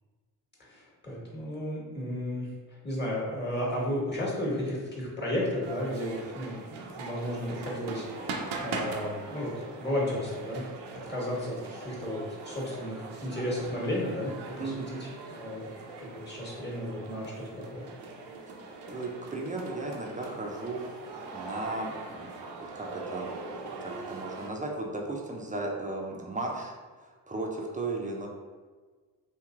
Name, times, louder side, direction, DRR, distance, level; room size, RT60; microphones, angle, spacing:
voice 1, 0.6-10.6 11.1-14.3 14.6-15.1 15.4-15.7 16.0-17.9, left 1 dB, 20° left, -4 dB, 1.4 m, -33 dB
sound 1, 5.6-24.5, right 3 dB, 55° right, 0.6 m, -41 dB
voice 2, 14.6-14.9 18.9-22.3 22.7-23.3 23.8-28.3, right 2 dB, 15° right, -1 dB, 0.6 m, -36 dB
3.0 x 2.8 x 2.4 m, 1.4 s
hypercardioid pair, 40°, 49 cm